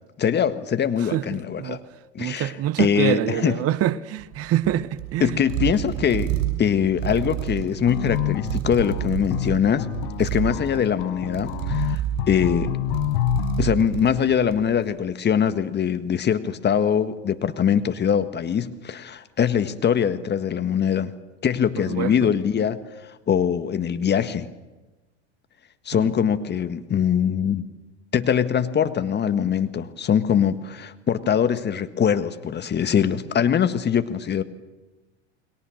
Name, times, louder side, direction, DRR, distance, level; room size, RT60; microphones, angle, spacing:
voice 1, 0.2-1.8 2.2-2.5 2.8-3.6 5.2-9.9 10.2-12.0 12.3-12.7 13.6-21.1 21.4-22.8 23.3-24.5 25.9-27.7 28.1-34.4, left 8 dB, 30° left, 1.7 m, -22 dB
voice 2, 1.1-1.8 2.2-5.4 21.8-22.3 25.9-26.1, right 12 dB, 40° right, 1.1 m, -26 dB
sound 1, 4.2-14.8, right 12 dB, 60° right, 6.6 m, -30 dB
sound 2, 7.9-13.6, left 17 dB, 65° left, 1.1 m, -27 dB
30.0 x 21.5 x 6.5 m
hypercardioid pair, 85°, 35 cm